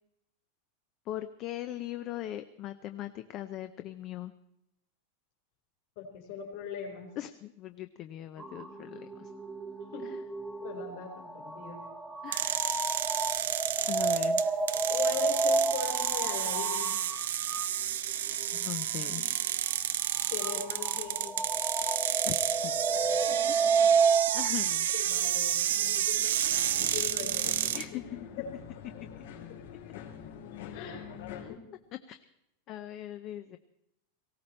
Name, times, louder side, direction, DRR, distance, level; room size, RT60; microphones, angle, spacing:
voice 1, 1.1-4.3 7.2-9.3 12.2-12.9 13.9-14.6 18.5-19.3 22.2-22.3 22.6-22.8 23.5-23.9 24.3-24.9 25.7-26.3 27.7-28.3 29.0-29.1 31.4-31.6 32.1-32.2 32.7-33.6, left 13 dB, 30° left, 10 dB, 0.5 m, -40 dB
voice 2, 6.0-7.1 9.9-10.1 10.6-11.8 14.9-16.9 18.9-19.2 19.9-20.0 20.3-21.4 23.3-23.9 24.9-28.0 28.4-29.0 29.5-29.6 30.7-31.1 31.5-31.6, left 6 dB, 50° left, 3 dB, 4.3 m, -40 dB
sound 1, 8.4-17.7 18.4-18.6 20.1-24.5, right 4 dB, 5° right, 0.9 m, -30 dB
sound 2, 12.3-27.8, right 11 dB, 90° right, 0.8 m, -31 dB
sound 3, 26.4-31.4, left 8 dB, 80° left, 3.6 m, -45 dB
18.5 x 17.0 x 4.4 m, 0.84 s
supercardioid pair, 170°, 0 cm